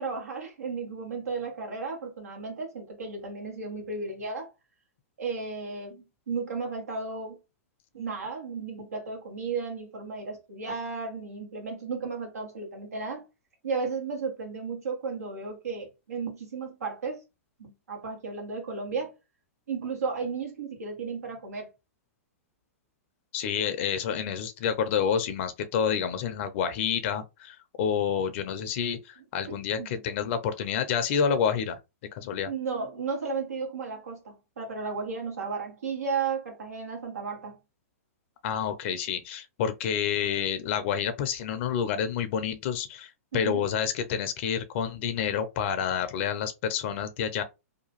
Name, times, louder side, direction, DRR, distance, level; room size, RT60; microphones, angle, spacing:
voice 1, 0.0-4.5 5.2-7.4 7.9-13.2 13.6-17.2 17.6-19.1 19.7-21.7 29.5-30.0 32.5-37.6 43.3-43.7, right 4 dB, 90° right, 1.3 m, -34 dB
voice 2, 23.3-31.8 32.1-32.5 38.4-47.4, left 7 dB, 50° left, 0.5 m, -29 dB
2.8 x 2.3 x 2.9 m
hypercardioid pair, 125°, 8 cm